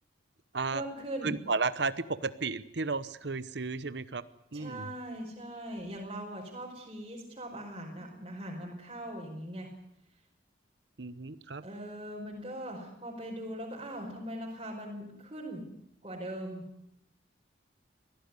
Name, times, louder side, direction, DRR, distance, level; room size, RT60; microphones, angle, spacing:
voice 1, 0.7-1.4 4.5-9.7 11.6-15.7 16.0-16.6, right 1 dB, 25° right, -3 dB, 5.2 m, -40 dB
voice 2, 1.2-4.2 4.5-4.9 11.0-11.6, right 4 dB, 60° right, 14 dB, 0.9 m, -33 dB
24.0 x 17.0 x 9.6 m, 0.81 s
head